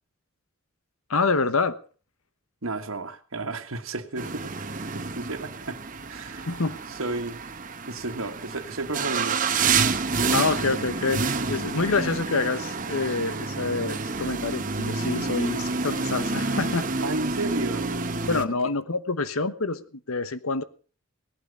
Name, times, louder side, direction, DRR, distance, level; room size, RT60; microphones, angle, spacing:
voice 1, 1.1-1.8 6.5-6.8 10.3-16.9 18.3-20.6, left 3 dB, 85° left, 1.1 m, -27 dB
voice 2, 2.6-4.6 4.9-6.5 6.9-7.4 7.9-9.5 17.0-17.9, right 2 dB, 75° right, 1.6 m, -33 dB
sound 1, 4.2-18.4, right 4 dB, 40° right, 1.0 m, -29 dB
18.0 x 12.0 x 5.3 m
head